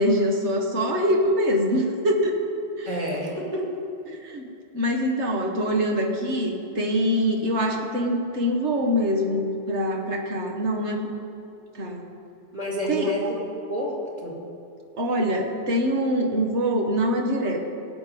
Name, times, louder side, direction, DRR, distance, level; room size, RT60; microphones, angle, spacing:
voice 1, 0.0-2.3 2.8-2.9 4.2-4.5 4.7-11.1 11.7-12.0 12.9-13.1 15.0-17.6, equal, 85° right, 1 dB, 1.8 m, -24 dB
voice 2, 2.8-3.8 12.5-13.4 13.7-14.4, equal, 35° right, -4 dB, 2.6 m, -29 dB
18.5 x 8.1 x 5.3 m, 2.7 s
omnidirectional pair, 1.1 m